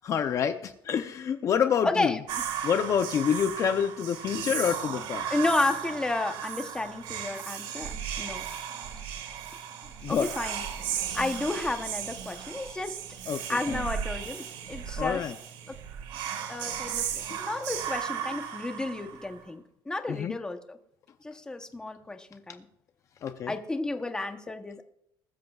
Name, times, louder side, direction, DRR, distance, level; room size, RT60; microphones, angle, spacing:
voice 1, 0.0-2.1 2.6-5.3 10.0-10.3 13.3-13.4 15.0-15.3 20.1-20.3 23.2-23.5, left 8 dB, 40° left, 8 dB, 0.6 m, -27 dB
voice 2, 1.8-2.4 5.3-8.4 10.1-10.6 11.1-13.0 13.5-15.3 15.7-15.8 16.5-20.8 21.2-22.7 23.5-24.8, left 2 dB, 10° left, 6 dB, 0.9 m, -32 dB
Whispering, 2.3-19.4, right 9 dB, 90° right, 1.9 m, -36 dB
20.5 x 13.5 x 2.4 m, 0.75 s
cardioid pair, 165°, 8 cm